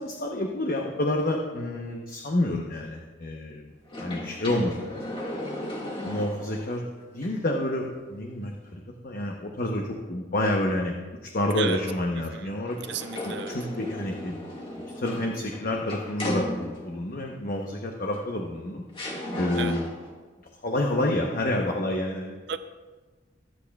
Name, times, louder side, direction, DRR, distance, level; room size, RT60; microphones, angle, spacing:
voice 1, 0.0-3.7 4.0-5.0 6.0-11.0 11.2-12.8 13.2-14.7 15.0-18.8 19.4-19.8 20.6-22.4, left 1 dB, 50° left, 0.9 m, -29 dB
sound 1, 3.9-6.8 7.2-7.3 12.7-17.0 18.1-18.2 18.9-20.1, left 1 dB, 30° left, 1.8 m, -35 dB
voice 2, 12.2-12.5 12.9-13.6 19.6-19.8 22.5-22.6, right 6 dB, 65° right, 0.6 m, -33 dB
23.5 x 8.7 x 2.4 m
head